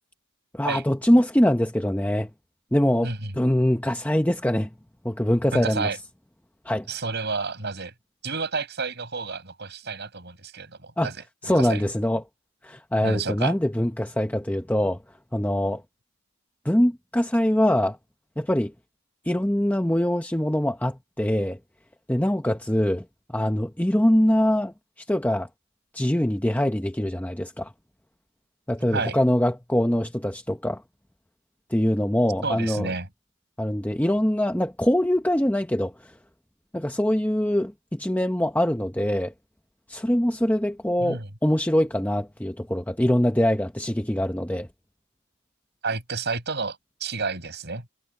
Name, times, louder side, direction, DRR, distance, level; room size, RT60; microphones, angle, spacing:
voice 1, 0.5-2.3 2.7-4.7 5.0-5.9 6.6-6.9 11.0-11.1 11.4-12.2 12.6-15.0 15.3-15.8 16.6-18.0 18.4-18.7 19.2-21.6 22.1-23.0 23.3-25.5 25.9-27.7 28.7-30.8 31.7-32.9 33.6-36.1 36.7-39.3 39.9-44.7, left 1 dB, 5° left, 0.9 m, -23 dB
voice 2, 5.5-6.0 6.9-7.9 8.2-11.1 11.5-11.8 13.0-13.5 28.9-29.2 32.4-33.1 41.0-41.3 45.8-47.8, right 4 dB, 50° right, 6.5 m, -30 dB
head